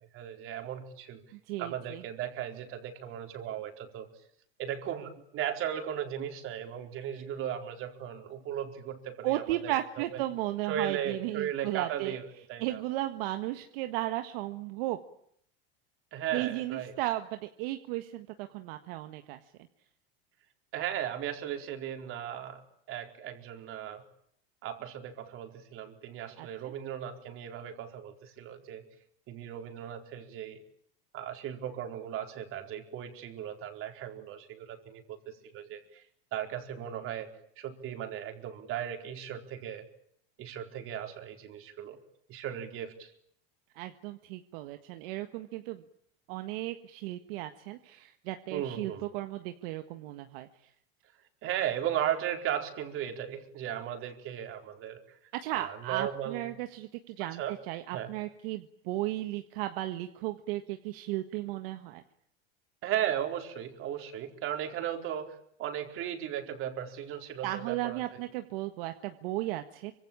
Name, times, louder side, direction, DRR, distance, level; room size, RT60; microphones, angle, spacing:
voice 1, 0.1-1.2 1.6-4.1 4.6-10.2 10.7-12.8 16.1-16.9 20.7-22.6 22.9-24.0 24.6-28.8 29.3-30.6 31.1-36.0 36.3-37.3 37.6-39.8 40.4-42.0 42.3-43.1 48.5-49.0 51.4-55.0 55.5-56.4 57.3-57.6 57.9-58.1 62.8-68.2, right 10 dB, 45° right, 5 dB, 4.5 m, -36 dB
voice 2, 1.3-2.0 9.2-12.2 12.6-15.0 16.3-19.4 26.4-26.7 43.7-45.8 46.3-50.5 55.3-62.0 67.4-69.9, right 16 dB, 70° right, 7 dB, 1.6 m, -35 dB
25.5 x 25.5 x 8.8 m, 0.69 s
supercardioid pair, 135°, 30 cm